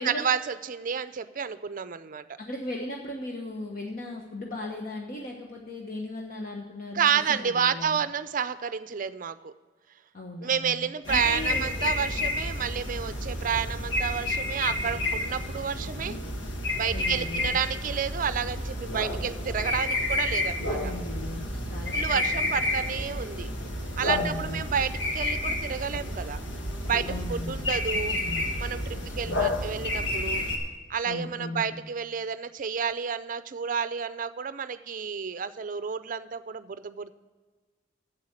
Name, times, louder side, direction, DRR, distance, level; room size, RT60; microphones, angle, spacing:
voice 1, 0.0-2.2 6.9-9.5 10.4-16.1 16.7-20.9 21.9-23.5 24.0-26.4 26.9-28.2 28.6-30.4 30.9-37.1, right 7 dB, 45° right, 13 dB, 0.5 m, -30 dB
voice 2, 2.4-8.0 10.1-11.6 16.9-17.6 20.8-22.4 24.1-24.7 27.0-27.6 28.1-28.5 29.2-29.4 31.0-31.7, left 2 dB, 50° left, 0 dB, 1.1 m, -37 dB
sound 1, 11.1-30.6, left 1 dB, 85° left, 1.5 m, -30 dB
8.1 x 7.7 x 6.5 m, 1.4 s
head